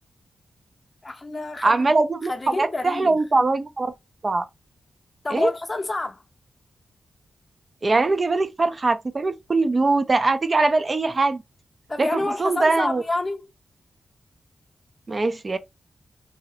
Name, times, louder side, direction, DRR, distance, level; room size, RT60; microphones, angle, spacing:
voice 1, 1.0-1.9 2.2-3.2 5.2-6.2 11.9-13.5, left 2 dB, 35° left, 0.6 m, -28 dB
voice 2, 1.6-2.3 2.6-3.9 4.2-4.4 5.3-5.5 7.8-11.4 12.0-12.1 12.4-13.0 15.1-15.6, right 3 dB, 45° right, 0.4 m, -21 dB
2.7 x 2.0 x 2.6 m
cardioid pair, 50°, 0 cm